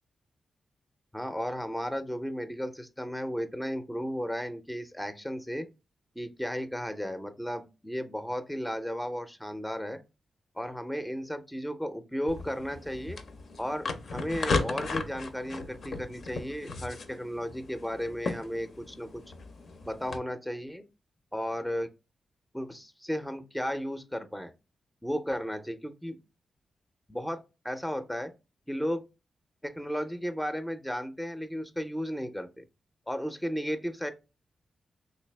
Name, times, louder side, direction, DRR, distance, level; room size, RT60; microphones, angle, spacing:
voice 1, 1.1-5.7 6.2-10.0 10.6-13.2 13.6-19.2 19.9-20.8 21.3-21.9 22.5-24.5 25.0-26.2 27.1-28.3 28.7-29.0 29.6-32.6 33.1-34.1, equal, 5° left, 9 dB, 0.4 m, -34 dB
sound 1, 12.3-20.2, left 3 dB, 65° left, 0.5 m, -36 dB
3.3 x 2.6 x 3.2 m, 0.28 s
cardioid pair, 90°, 0 cm